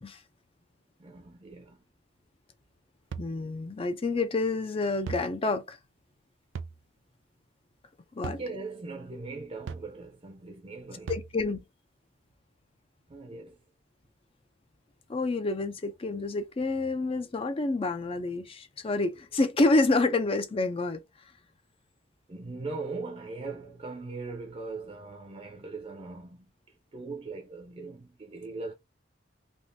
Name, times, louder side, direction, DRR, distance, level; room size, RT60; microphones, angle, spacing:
voice 1, 1.0-1.9 8.2-11.2 13.1-13.6 22.3-26.5 26.9-28.7, right 3 dB, 30° right, 0.6 m, -40 dB
sound 1, 3.1-3.3 5.1-5.3 6.6-6.8 8.2-8.5 9.7-9.9 11.1-11.4, right 5 dB, 85° right, 0.4 m, -37 dB
voice 2, 3.2-5.8 8.1-8.4 11.1-11.6 15.1-21.0, left 2 dB, 30° left, 0.4 m, -28 dB
3.5 x 2.5 x 2.6 m
head